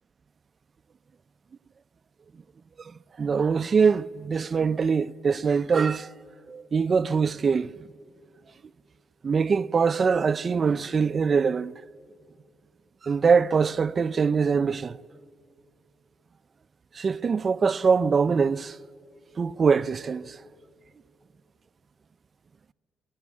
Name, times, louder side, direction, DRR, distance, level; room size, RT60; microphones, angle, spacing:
voice 1, 2.8-6.1 6.5-7.7 9.2-11.7 13.0-15.0 16.9-18.8 19.4-20.4, right 5 dB, 40° right, 0.5 m, -23 dB
22.5 x 22.5 x 8.4 m
cardioid pair, 90°, 0 cm